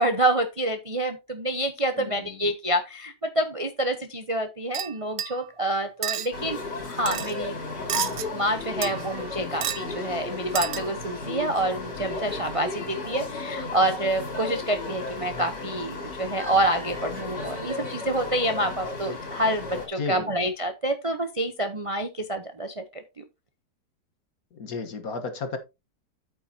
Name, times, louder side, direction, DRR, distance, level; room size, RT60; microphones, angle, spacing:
voice 1, 0.0-6.6 6.8-7.6 8.0-23.2, right 1 dB, 30° right, 0.6 m, -27 dB
voice 2, 2.0-2.4 9.3-9.6 20.0-20.5 24.6-25.6, left 4 dB, 55° left, 1.7 m, -34 dB
sound 1, 4.7-5.5 6.0-6.3 7.1-7.3 7.9-8.3 8.8-9.3 9.6-9.9 10.6-10.9, right 9 dB, 60° right, 0.9 m, -30 dB
sound 2, 6.3-19.9, left 3 dB, 75° left, 5.0 m, -34 dB
8.9 x 8.7 x 2.8 m
omnidirectional pair, 1.8 m